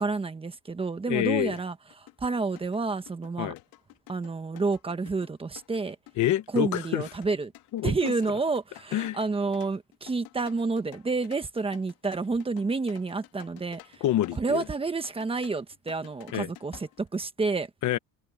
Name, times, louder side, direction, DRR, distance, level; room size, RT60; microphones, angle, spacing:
voice 1, 0.0-3.5 4.1-6.0 6.5-7.5 7.8-14.0 14.4-17.7, right 3 dB, 15° right, 1.2 m, -29 dB
voice 2, 1.1-1.5 3.4-3.6 6.2-7.0 7.7-8.1 8.9-9.2 14.0-14.7 16.3-16.5 17.8-18.0, left 13 dB, 50° left, 1.1 m, -27 dB
sound 1, 1.2-1.3 1.6-17.1, left 17 dB, 75° left, 2.9 m, -51 dB
cardioid pair, 155°, 36 cm